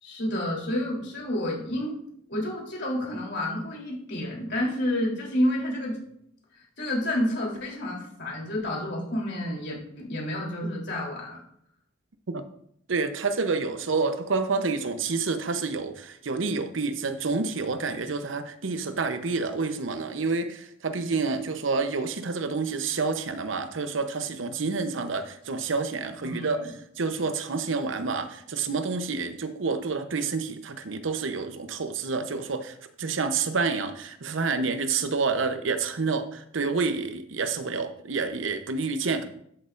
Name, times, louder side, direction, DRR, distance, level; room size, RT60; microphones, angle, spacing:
voice 1, 0.0-2.0 2.3-6.0 6.8-11.4 26.2-26.7, left 1 dB, 65° left, -2 dB, 3.3 m, -29 dB
voice 2, 12.9-39.3, right 4 dB, 80° right, 9 dB, 0.8 m, -28 dB
12.5 x 8.1 x 2.5 m, 0.71 s
head